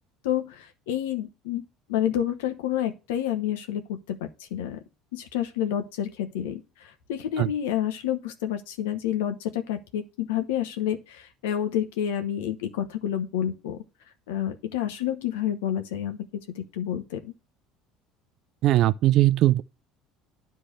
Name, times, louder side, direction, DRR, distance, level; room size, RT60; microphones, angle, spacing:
voice 1, 0.2-1.6 1.9-4.8 5.1-13.8 14.3-17.3, left 10 dB, 80° left, 1.0 m, -29 dB
voice 2, 18.6-19.6, right 15 dB, 60° right, 0.5 m, -20 dB
10.0 x 3.4 x 6.4 m
hypercardioid pair, 75°, 0 cm